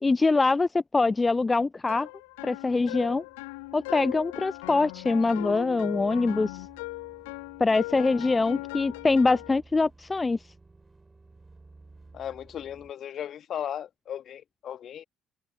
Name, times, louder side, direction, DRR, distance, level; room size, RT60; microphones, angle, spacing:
voice 1, 0.0-2.1 2.4-3.2 3.7-6.7 7.6-10.4, left 3 dB, 25° left, 0.4 m, -24 dB
sound 1, 1.7-12.9, right 3 dB, 20° right, 5.7 m, -56 dB
sound 2, 1.9-9.6, left 24 dB, 75° left, 0.8 m, -38 dB
voice 2, 12.1-15.0, left 10 dB, 55° left, 1.6 m, -37 dB
figure-of-eight pair, 50°, 0 cm